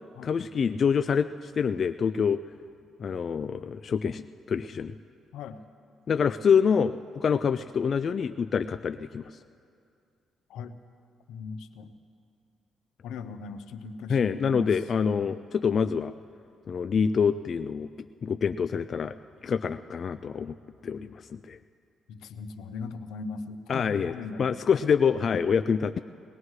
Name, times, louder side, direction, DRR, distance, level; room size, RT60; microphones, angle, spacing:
voice 1, 0.2-2.4 3.0-4.9 6.1-9.4 14.1-16.1 16.7-17.9 18.2-19.1 19.4-20.5 20.8-21.6 23.7-24.1 24.4-26.0, left 6 dB, 50° left, 10 dB, 0.3 m, -26 dB
voice 2, 11.3-11.9 13.0-14.8 15.2-15.4 22.1-24.8, left 4 dB, 85° left, 10 dB, 0.7 m, -39 dB
21.0 x 19.0 x 3.2 m, 2.5 s
cardioid pair, 90°, 0 cm